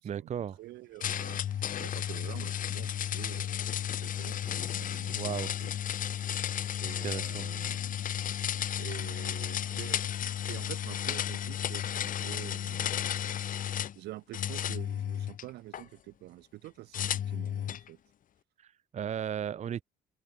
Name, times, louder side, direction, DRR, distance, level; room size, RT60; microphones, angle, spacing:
voice 1, 0.0-0.6 5.1-5.5 7.0-7.5 18.6-19.8, right 9 dB, 45° right, 1.1 m, -35 dB
voice 2, 0.6-6.1 6.8-8.0 8.8-10.0 10.5-12.9 14.0-18.0, right 17 dB, 80° right, 2.5 m, -47 dB
sound 1, 1.0-14.0 14.3-15.8 16.9-17.9, left 10 dB, 55° left, 2.1 m, -33 dB
cardioid pair, 110°, 17 cm